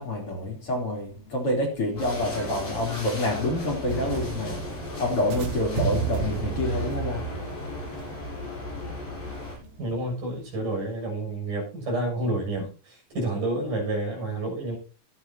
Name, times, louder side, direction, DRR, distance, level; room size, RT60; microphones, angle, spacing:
voice 1, 0.0-7.3 9.2-9.3, left 1 dB, 40° left, 4.1 m, -28 dB
sound 1, 2.0-9.6, left 2 dB, 75° left, 9.6 m, -36 dB
sound 2, 3.9-10.0, right 7 dB, 90° right, 2.9 m, -33 dB
voice 2, 9.8-14.8, right 2 dB, 65° right, 8.7 m, -29 dB
23.0 x 9.1 x 2.9 m
omnidirectional pair, 4.0 m